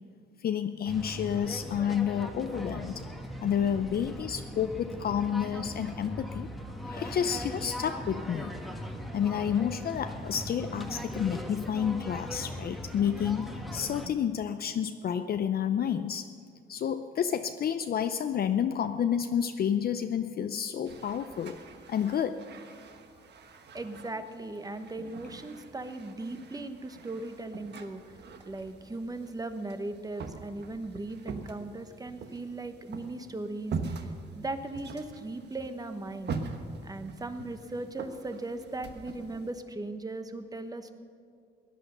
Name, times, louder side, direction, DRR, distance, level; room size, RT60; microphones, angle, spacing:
voice 1, 0.4-3.0 3.4-6.5 6.8-8.6 9.1-16.3 16.7-21.6 21.9-22.4, left 8 dB, 50° left, 9 dB, 0.5 m, -30 dB
sound 1, 0.9-14.1, equal, ahead, 1.3 m, -39 dB
sound 2, 20.9-39.5, right 4 dB, 60° right, 1.2 m, -43 dB
voice 2, 23.7-28.0 28.5-34.0 34.3-36.4 36.8-40.9, right 2 dB, 20° right, 9 dB, 1.1 m, -38 dB
16.5 x 10.0 x 6.8 m, 2.2 s
cardioid pair, 90°, 20 cm